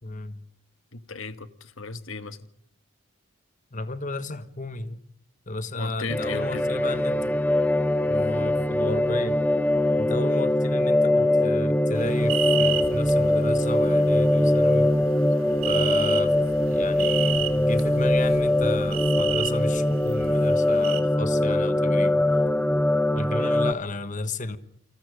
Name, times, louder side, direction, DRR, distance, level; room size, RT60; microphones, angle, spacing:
voice 1, 0.0-0.4 3.7-5.0 5.5-7.4 8.1-9.4 10.0-14.9 15.7-16.4 16.7-22.2 23.1-24.6, left 2 dB, 35° left, 1.3 m, -33 dB
voice 2, 0.9-2.4 5.8-6.7, left 3 dB, 65° left, 1.6 m, -36 dB
sound 1, 6.1-23.7, left 1 dB, 5° left, 1.1 m, -22 dB
sound 2, 11.9-21.0, right 10 dB, 70° right, 2.5 m, -33 dB
29.0 x 26.0 x 5.1 m
head